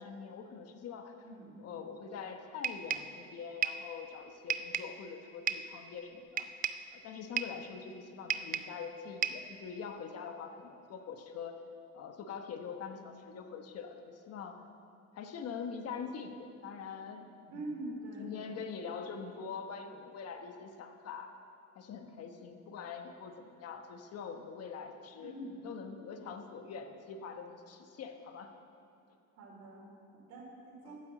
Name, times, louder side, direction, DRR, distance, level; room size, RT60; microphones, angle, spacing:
voice 1, 0.0-1.1 1.6-6.5 6.9-11.5 11.9-14.6 15.1-17.3 17.5-17.6 18.2-21.3 21.7-25.3 25.6-28.5 30.8-31.0, left 6 dB, 55° left, 5 dB, 1.2 m, -44 dB
sound 1, 2.6-3.2 3.6-3.9 4.5-5.0 5.5-5.7 6.4-6.9 7.4-7.6 8.3-8.8 9.2-9.5, right 7 dB, 30° right, 0.4 m, -34 dB
voice 2, 17.5-18.6 22.0-22.2 25.2-25.6 29.4-31.0, right 1 dB, 65° right, -2 dB, 4.1 m, -45 dB
12.0 x 9.8 x 7.6 m, 2.7 s
cardioid pair, 150°, 29 cm